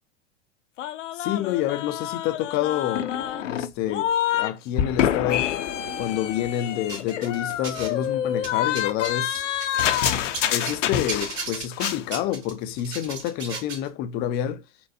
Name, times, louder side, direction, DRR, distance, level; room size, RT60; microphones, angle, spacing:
sound 1, 0.8-4.5 4.8-11.5 11.7-12.0, left 10 dB, 75° left, 0.6 m, -27 dB
voice 1, 1.2-3.1 3.4-5.5 6.0-9.4 10.5-14.6, left 11 dB, 30° left, 0.4 m, -28 dB
sound 2, 6.9-8.1 8.4-10.8 11.1-13.9, right 4 dB, 40° right, 1.9 m, -34 dB
4.2 x 2.2 x 2.6 m
hypercardioid pair, 100°, 37 cm